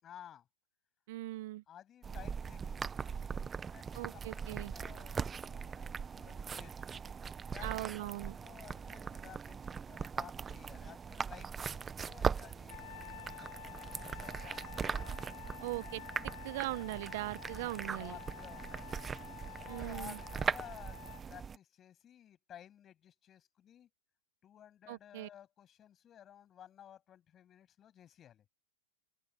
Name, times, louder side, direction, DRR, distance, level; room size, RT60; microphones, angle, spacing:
voice 1, 0.0-0.5 1.7-2.8 3.7-6.9 7.5-14.7 18.0-19.0 19.4-21.0 21.3-23.9 24.4-28.4, left 10 dB, 25° left, 7.9 m, -55 dB
voice 2, 1.1-1.6 3.9-4.7 7.6-8.4 15.6-16.0 16.4-18.2 19.7-20.2 24.9-25.3, right 18 dB, 55° right, 0.8 m, -40 dB
sound 1, 2.0-21.6, right 6 dB, 15° right, 0.8 m, -40 dB
Trumpet, 12.7-21.2, left 19 dB, 60° left, 7.7 m, -51 dB
Quick Chain Drops, 17.9-18.0 20.9-21.5, right 10 dB, 80° right, 6.5 m, -66 dB
open air
hypercardioid pair, 135°, 0 cm